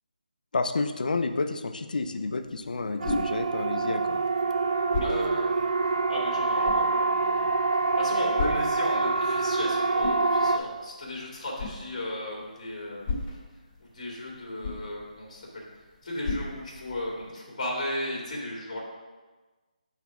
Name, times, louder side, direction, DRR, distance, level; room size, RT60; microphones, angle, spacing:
voice 1, 0.5-4.2, left 3 dB, 70° left, 9 dB, 0.5 m, -30 dB
sound 1, 2.4-17.3, left 3 dB, 20° left, 1.9 m, -38 dB
Siren, 3.0-10.6, right 3 dB, 60° right, 0.5 m, -26 dB
voice 2, 5.0-5.4 6.1-7.5 8.0-13.1 13.8-15.6 16.0-18.8, left 1 dB, 40° left, -3 dB, 1.9 m, -35 dB
6.0 x 3.6 x 5.9 m, 1.3 s
hypercardioid pair, 175°, 5 cm